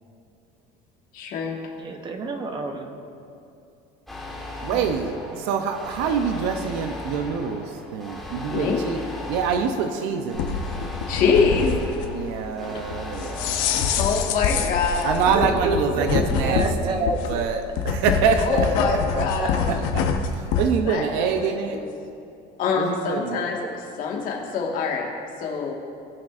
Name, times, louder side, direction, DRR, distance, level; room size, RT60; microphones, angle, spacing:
voice 1, 1.1-1.6 8.5-8.8 11.1-11.8 13.9-15.2 18.4-19.7 20.8-21.9 22.6-23.6 24.0-25.1 25.4-25.7, left 5 dB, 50° left, 0 dB, 1.6 m, -24 dB
voice 2, 1.8-3.0 4.7-4.8 15.3-17.5 23.6-23.7, right 2 dB, 25° right, 5 dB, 0.8 m, -28 dB
sound 1, 4.1-15.2, left 2 dB, ahead, 1.6 m, -37 dB
voice 3, 4.6-9.0 9.3-10.6 12.1-14.0 15.0-20.1 20.6-21.8 22.8-23.4, right 6 dB, 75° right, 7 dB, 0.6 m, -26 dB
sound 2, 10.3-20.7, left 6 dB, 75° left, 0.9 m, -26 dB
18.0 x 6.1 x 2.5 m, 2.6 s
cardioid pair, 150°, 18 cm